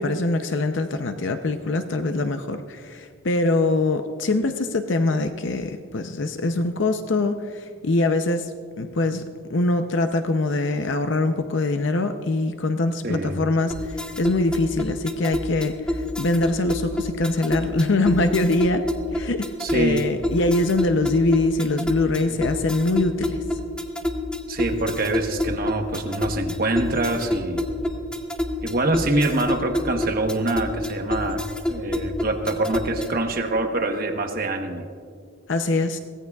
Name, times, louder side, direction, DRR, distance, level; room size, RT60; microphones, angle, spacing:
voice 1, 0.0-8.5 8.8-9.2 9.5-23.4 35.5-36.0, left 2 dB, 60° left, 7 dB, 0.6 m, -23 dB
voice 2, 13.0-13.4 19.6-20.1 22.3-22.4 24.5-27.6 28.6-31.4 31.7-34.9, right 2 dB, 45° right, 4 dB, 1.1 m, -25 dB
sound 1, 13.7-33.3, left 1 dB, 5° left, 0.8 m, -28 dB
23.0 x 17.0 x 2.3 m, 2.2 s
head